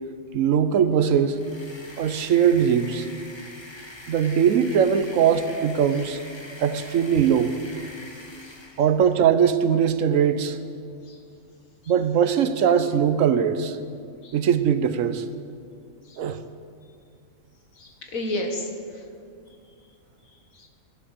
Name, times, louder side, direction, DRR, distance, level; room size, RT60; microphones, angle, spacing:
voice 1, 0.3-1.4 2.0-3.1 4.1-6.2 6.6-7.5 8.8-10.6 11.9-13.8 14.3-15.2 16.2-16.4, right 8 dB, 75° right, 12 dB, 1.1 m, -21 dB
sound 1, 1.2-8.9, left 1 dB, 20° left, 1.2 m, -44 dB
voice 2, 17.7-19.1 20.5-20.7, left 1 dB, 80° left, 3 dB, 2.1 m, -32 dB
16.0 x 10.5 x 6.6 m, 2.3 s
omnidirectional pair, 1.4 m